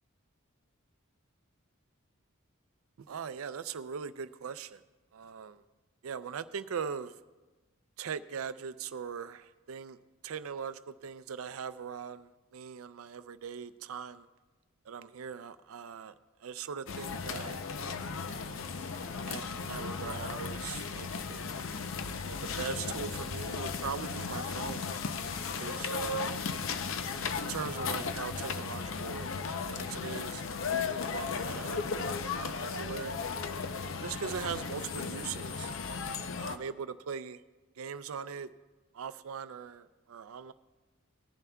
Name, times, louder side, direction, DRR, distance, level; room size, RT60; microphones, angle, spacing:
voice 1, 3.0-4.8 5.1-5.6 6.0-7.1 8.0-14.3 14.9-16.1 16.4-17.6 19.2-21.5 22.3-24.9 25.2-26.2 27.2-33.2 34.0-35.7 36.4-37.4 37.8-38.5 38.9-40.5, right 6 dB, 80° right, 14 dB, 0.4 m, -41 dB
sound 1, 16.9-36.6, left 5 dB, 65° left, 0.6 m, -36 dB
19.0 x 10.5 x 2.3 m, 1.2 s
head